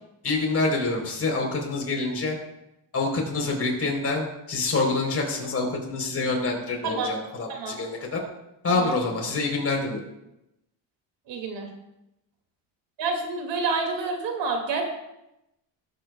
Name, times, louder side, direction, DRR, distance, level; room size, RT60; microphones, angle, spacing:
voice 1, 0.2-2.4 2.9-8.2 8.6-10.0, left 3 dB, 30° left, -1 dB, 3.8 m, -26 dB
voice 2, 11.3-11.7 13.0-14.8, right 4 dB, 65° right, 2 dB, 2.5 m, -28 dB
19.0 x 8.5 x 2.3 m, 0.87 s
cardioid pair, 115°, 46 cm